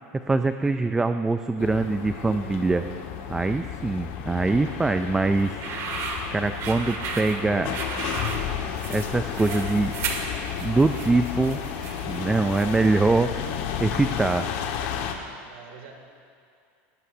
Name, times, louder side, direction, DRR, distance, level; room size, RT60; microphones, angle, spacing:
voice 1, 0.1-2.9 3.3-5.6 6.3-7.8 8.9-9.9 10.6-11.6 12.0-13.5 13.8-14.5, right 3 dB, 10° right, 9 dB, 0.3 m, -23 dB
sound 1, 1.6-15.1, left 8 dB, 65° left, 1.4 m, -32 dB
sound 2, 5.4-13.0, right 4 dB, 45° right, 1.9 m, -35 dB
voice 2, 15.4-15.9, right 7 dB, 75° right, 2 dB, 2.5 m, -49 dB
21.0 x 17.5 x 2.7 m, 2.4 s
supercardioid pair, 145°, 7 cm